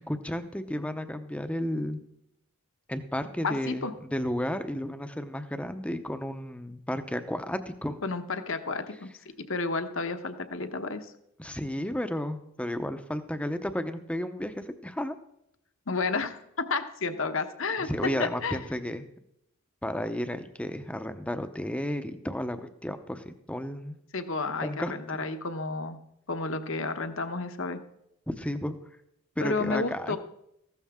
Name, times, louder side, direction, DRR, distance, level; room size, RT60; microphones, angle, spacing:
voice 1, 0.0-2.0 2.9-8.0 11.4-15.2 17.9-19.1 19.8-24.0 24.6-24.9 28.3-28.8 29.4-30.2, equal, 5° left, 9 dB, 0.7 m, -33 dB
voice 2, 3.4-3.9 8.0-9.1 9.5-11.1 15.9-16.4 16.7-18.6 24.1-26.0 26.3-27.8 29.4-30.2, left 3 dB, 60° left, 8 dB, 1.0 m, -31 dB
15.0 x 13.0 x 3.6 m, 0.78 s
head